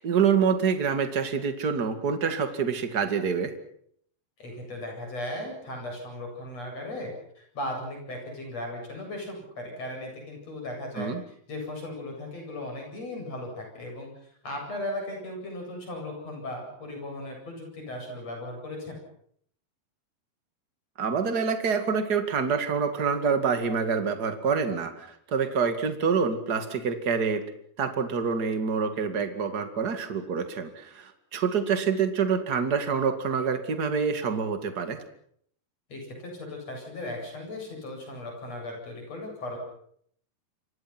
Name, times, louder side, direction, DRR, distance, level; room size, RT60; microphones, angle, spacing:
voice 1, 0.0-3.5 11.0-11.2 21.0-27.4 27.8-35.0, right 6 dB, 35° right, 8 dB, 1.9 m, -26 dB
voice 2, 4.4-14.1 14.4-19.0 35.9-39.6, left 1 dB, 40° left, 2 dB, 9.1 m, -37 dB
28.5 x 24.0 x 6.1 m, 0.65 s
omnidirectional pair, 4.8 m